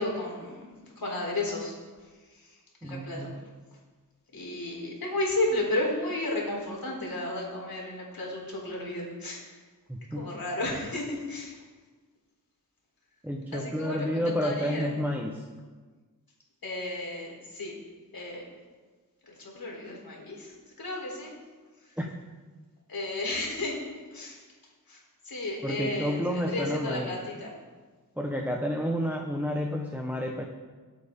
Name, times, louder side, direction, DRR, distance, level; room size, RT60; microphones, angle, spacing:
voice 1, 0.0-1.7 2.3-2.6 2.8-3.3 4.3-9.5 10.1-11.6 13.5-14.9 16.6-17.7 18.1-18.4 19.3-21.3 22.9-23.8 24.1-24.4 24.9-25.0 25.2-27.5, left 2 dB, 90° left, -2 dB, 3.9 m, -33 dB
voice 2, 2.8-3.3 9.9-10.3 13.2-15.4 22.0-22.1 25.6-27.1 28.2-30.4, equal, 5° right, 0 dB, 1.1 m, -30 dB
19.5 x 8.4 x 3.7 m, 1.4 s
wide cardioid pair, 105°, 35 cm